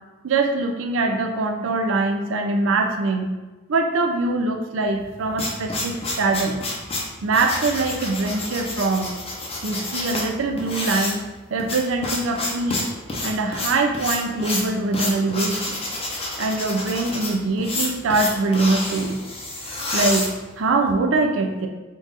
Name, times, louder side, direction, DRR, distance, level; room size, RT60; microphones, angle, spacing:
voice 1, 0.2-3.3 3.7-6.6 7.2-9.1 9.6-11.2 11.5-12.8 13.2-15.8 16.4-19.2 19.9-20.3 20.6-21.7, right 3 dB, 70° right, 3 dB, 0.4 m, -23 dB
sound 1, 5.0-20.9, left 2 dB, 30° left, 0.7 m, -29 dB
3.8 x 2.4 x 3.9 m, 1.2 s
head